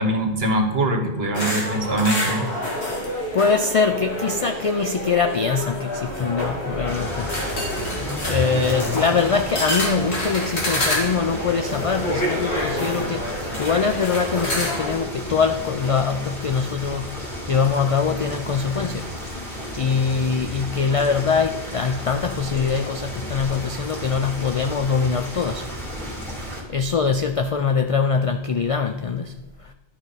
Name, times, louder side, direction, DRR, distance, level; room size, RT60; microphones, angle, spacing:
voice 1, 0.0-2.5, right 1 dB, 70° right, 5 dB, 1.4 m, -22 dB
sound 1, 1.3-14.9, left 1 dB, 85° left, 2.3 m, -28 dB
voice 2, 3.3-7.4 8.2-25.7 26.7-29.4, left 5 dB, 55° left, 7 dB, 0.3 m, -23 dB
Car passing by / Accelerating revving vroom, 6.0-12.0, equal, 30° left, 1.7 m, -34 dB
sound 2, 6.8-26.6, equal, ahead, 2.1 m, -34 dB
12.0 x 5.9 x 4.0 m, 0.96 s
omnidirectional pair, 1.1 m